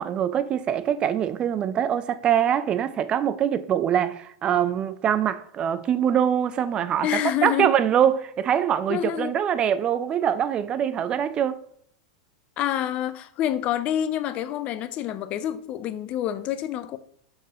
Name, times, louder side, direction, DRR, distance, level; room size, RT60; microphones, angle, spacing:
voice 1, 0.0-7.1 7.4-11.6, right 9 dB, 30° right, 0.4 m, -23 dB
voice 2, 7.0-7.7 8.9-9.4 12.6-17.0, left 11 dB, 40° left, 0.4 m, -27 dB
4.4 x 3.3 x 3.7 m
hypercardioid pair, 105°, 3 cm